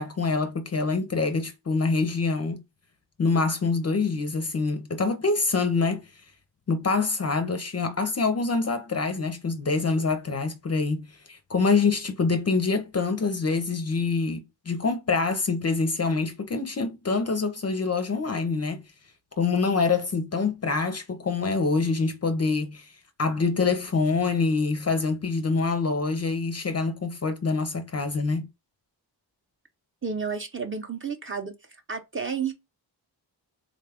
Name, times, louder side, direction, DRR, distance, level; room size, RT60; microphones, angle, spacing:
voice 1, 0.0-2.6 3.2-6.0 6.7-18.8 19.4-22.9 23.2-28.5, left 4 dB, 35° left, 0.5 m, -25 dB
voice 2, 30.0-31.5 31.9-32.5, right 6 dB, 30° right, 0.7 m, -31 dB
3.7 x 2.3 x 3.4 m
wide cardioid pair, 130°, 43 cm